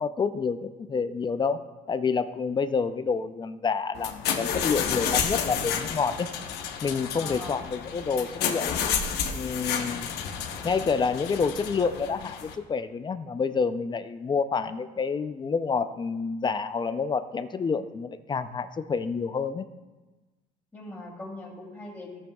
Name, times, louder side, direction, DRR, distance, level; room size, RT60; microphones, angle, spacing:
voice 1, 0.0-1.6 1.9-6.3 6.8-8.8 9.3-10.1 10.6-19.7, left 5 dB, 25° left, 11 dB, 0.4 m, -28 dB
sound 1, 3.9-12.6, left 7 dB, 75° left, 1.0 m, -31 dB
voice 2, 7.1-7.6 20.7-22.2, left 2 dB, 10° left, -4 dB, 2.9 m, -40 dB
15.0 x 7.2 x 2.3 m, 1.2 s
cardioid pair, 110°, 17 cm